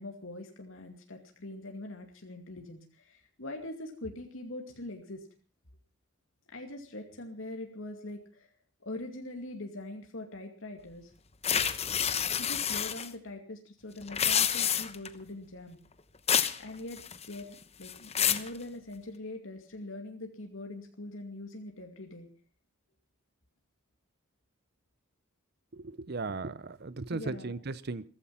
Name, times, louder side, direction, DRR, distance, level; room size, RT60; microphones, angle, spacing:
voice 1, 0.0-5.3 6.5-8.5 8.8-11.1 12.4-15.8 16.6-17.0 17.3-22.3 27.1-27.5, left 2 dB, 70° left, 3 dB, 2.4 m, -43 dB
sound 1, 11.4-13.1 14.0-15.1 16.3-16.6 16.9-17.4 17.8-18.5, left 8 dB, 30° left, 1.0 m, -28 dB
voice 2, 25.7-28.1, right 3 dB, 50° right, 18 dB, 0.7 m, -37 dB
16.0 x 15.0 x 5.7 m, 0.38 s
head